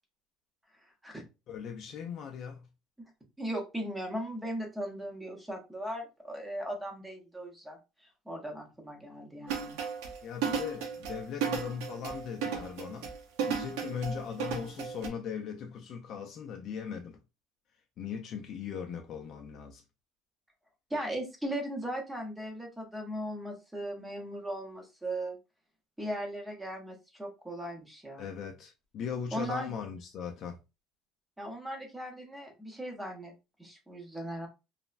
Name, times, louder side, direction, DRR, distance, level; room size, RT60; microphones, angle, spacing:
voice 1, 1.5-2.7 10.2-13.1 13.5-17.2 18.0-19.8 28.2-30.6, left 7 dB, 35° left, 0.3 m, -39 dB
voice 2, 3.4-7.8 8.3-9.8 20.9-25.4 26.0-28.3 29.3-29.7 31.4-33.3 33.6-34.5, right 1 dB, 5° right, 0.7 m, -38 dB
sound 1, 9.5-15.1, right 6 dB, 80° right, 0.8 m, -34 dB
3.1 x 2.0 x 2.4 m
cardioid pair, 170°, 0 cm